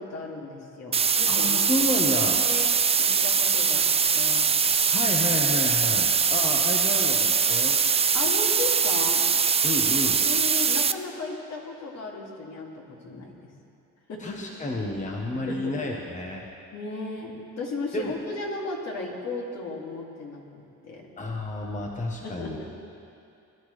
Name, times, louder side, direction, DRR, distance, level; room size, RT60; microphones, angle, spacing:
voice 1, 0.0-1.7 2.4-2.7 3.0-4.5 8.1-9.3 10.2-13.5 14.1-14.4 15.3-15.7 16.7-21.1 22.1-22.7, left 3 dB, 60° left, -2 dB, 2.6 m, -36 dB
sound 1, 0.9-10.9, right 6 dB, 20° right, 0.3 m, -22 dB
voice 2, 1.3-2.4 4.9-7.8 9.6-10.2 14.2-16.4 17.9-18.1 21.2-22.6, left 1 dB, 25° left, 0 dB, 1.2 m, -30 dB
21.5 x 11.5 x 3.3 m, 2.6 s
cardioid pair, 90°, 30 cm